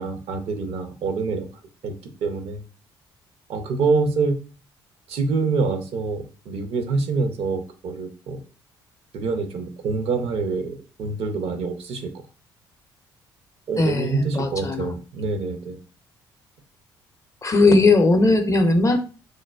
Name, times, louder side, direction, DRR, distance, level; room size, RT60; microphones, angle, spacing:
voice 1, 0.0-1.5 1.8-1.9 2.2-2.6 3.5-4.3 5.1-8.4 9.1-12.1 13.7-15.8, right 4 dB, 55° right, 7 dB, 0.5 m, -26 dB
voice 2, 13.8-14.9 17.4-19.0, left 2 dB, 25° left, 7 dB, 0.5 m, -18 dB
3.1 x 2.0 x 2.3 m, 0.35 s
figure-of-eight pair, 45°, 12 cm